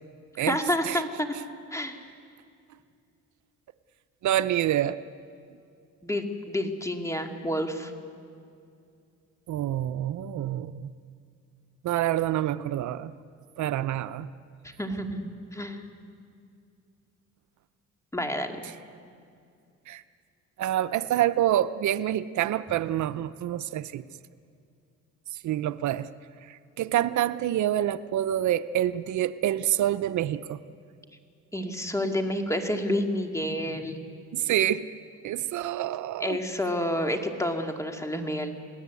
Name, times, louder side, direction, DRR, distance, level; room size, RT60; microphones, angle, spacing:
voice 1, 0.5-1.3 1.7-2.0 6.0-7.9 14.6-15.8 18.1-18.6 31.5-34.0 36.2-38.5, left 1 dB, 10° left, 4 dB, 2.5 m, -29 dB
voice 2, 4.2-5.0 9.5-10.9 11.8-13.1 13.6-14.3 19.9-20.0 20.6-24.0 25.4-26.1 26.5-30.6 34.3-34.9 35.2-36.4, right 12 dB, 70° right, 13 dB, 0.7 m, -27 dB
28.5 x 18.5 x 8.4 m, 2.4 s
cardioid pair, 90°, 30 cm